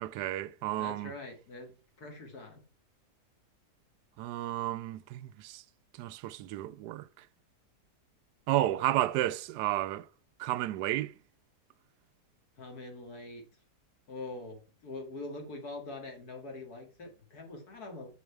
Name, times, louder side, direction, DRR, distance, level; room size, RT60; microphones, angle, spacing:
voice 1, 0.0-1.1 4.2-5.6 6.0-7.1 8.5-10.1 10.4-11.1, right 14 dB, 80° right, 1.2 m, -32 dB
voice 2, 0.8-2.6 12.6-13.4 14.1-18.1, left 2 dB, 65° left, 2.5 m, -44 dB
7.1 x 6.0 x 4.6 m
omnidirectional pair, 1.8 m